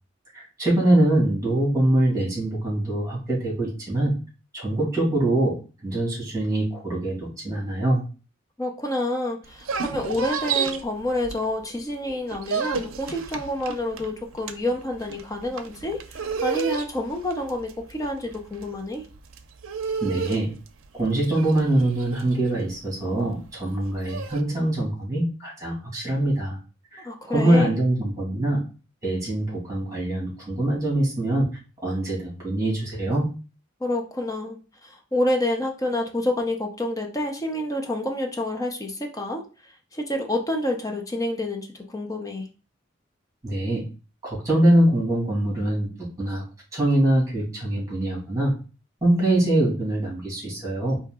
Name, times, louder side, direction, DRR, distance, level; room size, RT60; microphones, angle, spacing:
voice 1, 0.3-4.1 4.5-5.6 5.8-8.0 20.0-20.5 20.9-26.6 26.9-28.6 29.0-31.5 31.8-33.3 43.4-43.8 44.2-46.4 46.7-48.6 49.0-51.0, right 1 dB, 15° right, -3 dB, 2.2 m, -23 dB
voice 2, 8.6-16.0 16.4-19.0 27.0-27.7 33.8-39.4 39.9-42.5, left 1 dB, 15° left, 3 dB, 0.7 m, -28 dB
sound 1, 9.4-11.8 12.1-24.4, right 6 dB, 90° right, 0.5 m, -32 dB
4.4 x 2.8 x 3.7 m, 0.33 s
head